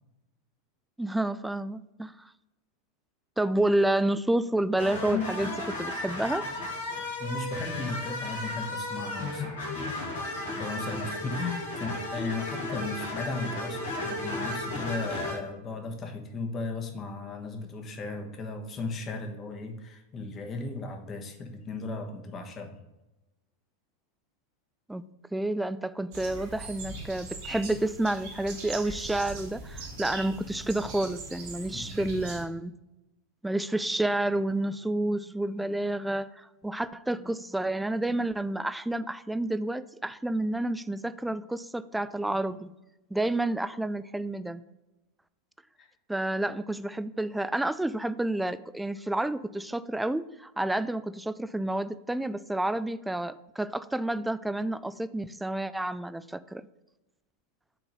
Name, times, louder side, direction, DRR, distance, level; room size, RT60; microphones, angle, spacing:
voice 1, 1.0-2.1 3.4-6.5 24.9-25.0 25.3-32.7 33.4-42.7 43.1-44.6 46.1-56.7, right 1 dB, 5° right, 15 dB, 0.3 m, -29 dB
sound 1, 4.8-15.3, left 2 dB, 75° left, 2.5 m, -34 dB
voice 2, 6.9-9.5 10.5-22.8 31.7-32.2 45.8-45.9, left 3 dB, 30° left, 4 dB, 1.2 m, -36 dB
sound 2, 26.1-32.4, right 3 dB, 60° right, 2.1 m, -41 dB
5.9 x 3.8 x 5.3 m, 0.98 s
hypercardioid pair, 95°, 0 cm